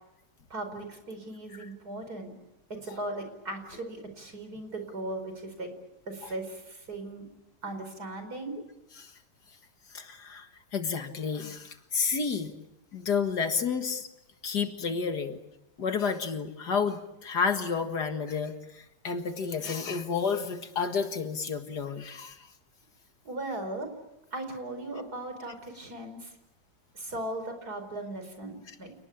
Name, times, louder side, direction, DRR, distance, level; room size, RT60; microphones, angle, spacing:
voice 1, 0.5-2.3 2.7-5.7 6.1-7.3 7.6-8.6 23.2-23.9 24.3-26.3 26.9-28.9, right 2 dB, 60° right, 7 dB, 5.3 m, -38 dB
voice 2, 9.9-12.5 12.9-14.1 14.4-15.4 15.8-22.5, left 5 dB, 65° left, 7 dB, 2.3 m, -31 dB
29.0 x 19.5 x 8.5 m, 0.91 s
omnidirectional pair, 1.9 m